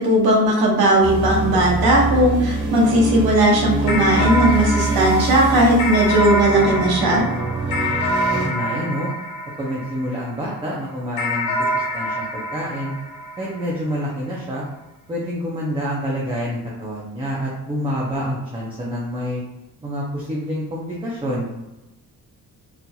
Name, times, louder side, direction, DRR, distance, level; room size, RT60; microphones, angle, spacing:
voice 1, 0.0-7.2, right 1 dB, 90° right, -2 dB, 1.1 m, -17 dB
sound 1, 1.0-8.5, right 2 dB, 55° right, 1.4 m, -24 dB
sound 2, 3.9-10.5 11.2-13.9, equal, 80° left, 0.9 m, -26 dB
voice 2, 8.2-9.1 9.6-12.9 13.4-14.6 15.1-19.4 19.8-21.5, equal, 15° right, -5 dB, 0.5 m, -27 dB
3.9 x 2.8 x 2.3 m, 0.99 s
wide cardioid pair, 160°, 35 cm